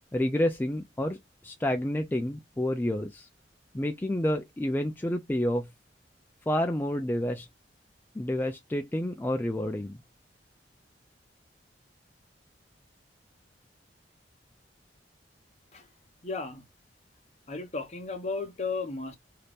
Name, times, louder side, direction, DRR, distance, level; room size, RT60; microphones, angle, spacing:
voice 1, 0.1-1.2 1.4-3.3 3.7-5.7 6.5-7.5 8.2-10.0, left 1 dB, 10° left, 0.3 m, -29 dB
voice 2, 16.2-16.6 17.5-19.2, left 4 dB, 40° left, 0.8 m, -34 dB
2.8 x 2.5 x 3.4 m
head